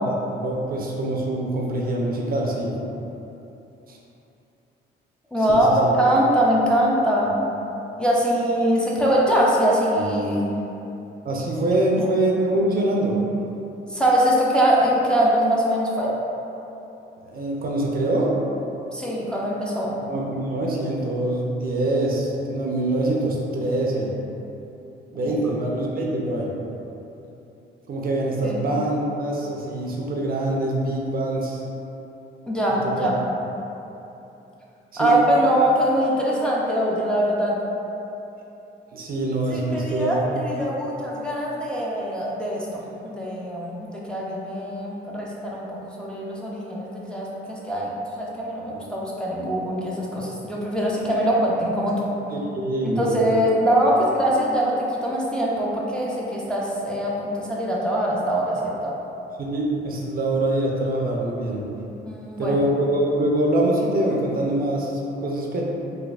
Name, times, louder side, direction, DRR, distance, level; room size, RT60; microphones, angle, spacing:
voice 1, 0.0-2.7 3.9-4.0 5.5-5.9 11.2-13.2 17.2-18.4 20.0-24.1 25.1-26.5 27.9-31.6 32.8-33.1 34.9-35.1 38.9-40.6 52.3-53.4 59.4-61.6 62.4-65.6, right 1 dB, 50° right, -2 dB, 0.5 m, -24 dB
voice 2, 5.3-7.3 8.0-10.4 12.0-12.1 13.9-16.1 18.9-19.9 25.2-25.4 28.4-28.6 32.5-33.2 35.0-37.6 39.5-52.1 52.8-58.9 62.0-62.6, right 1 dB, 5° left, -6 dB, 0.5 m, -22 dB
4.0 x 2.6 x 2.3 m, 2.9 s
cardioid pair, 90°, 20 cm